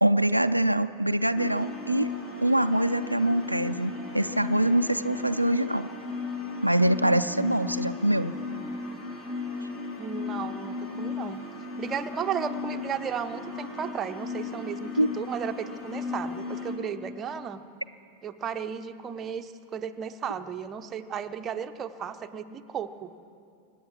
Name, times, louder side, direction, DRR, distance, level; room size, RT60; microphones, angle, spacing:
voice 1, 0.0-2.1 2.4-5.9 6.6-8.3 15.0-15.1, right 1 dB, 90° right, 10 dB, 0.4 m, -24 dB
sound 1, 1.3-16.8, left 4 dB, 35° left, 3.0 m, -36 dB
voice 2, 10.0-11.4 11.8-17.6 18.2-23.1, right 7 dB, 25° right, 8 dB, 0.7 m, -34 dB
24.5 x 9.4 x 6.2 m, 2.5 s
figure-of-eight pair, 90°, 0 cm